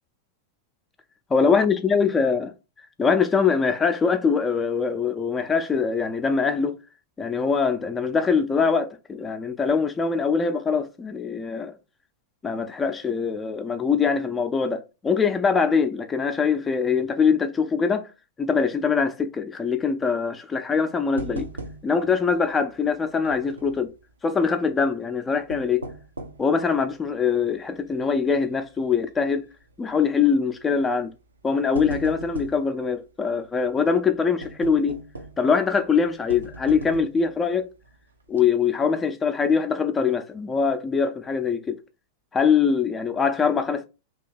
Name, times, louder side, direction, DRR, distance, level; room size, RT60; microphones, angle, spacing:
voice 1, 1.3-2.5 3.0-6.8 7.2-11.8 12.4-18.1 18.4-21.5 21.8-23.9 24.2-25.8 26.4-29.5 29.8-31.1 31.4-35.0 35.4-37.7 38.3-41.8 42.3-43.9, left 5 dB, 15° left, 0.4 m, -23 dB
sound 1, 21.2-22.1 22.4-22.5 23.2-23.9 25.3-26.5 27.1-27.2 27.8-28.1 28.4-28.5 29.6-29.9 30.8-31.0 31.4-32.7 34.4-35.5 36.3-37.3 37.8-37.9 38.3-38.4, right 2 dB, 80° right, 0.5 m, -37 dB
2.9 x 2.8 x 4.0 m
figure-of-eight pair, 95°, 0 cm